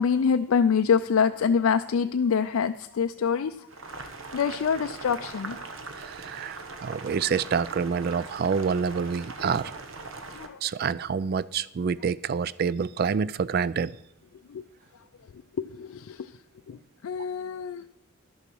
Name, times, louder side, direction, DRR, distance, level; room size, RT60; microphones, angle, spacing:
voice 1, 0.0-3.5 4.3-5.6 10.3-10.6 14.5-14.7 15.6-16.3 16.7-16.8 17.0-17.9, left 6 dB, 80° left, 8 dB, 0.4 m, -25 dB
Boiling, 3.7-10.5, right 3 dB, 70° right, 1.1 m, -40 dB
voice 2, 6.0-9.7 10.6-14.0, right 6 dB, 45° right, 19 dB, 0.3 m, -27 dB
11.5 x 6.8 x 6.2 m, 0.79 s
head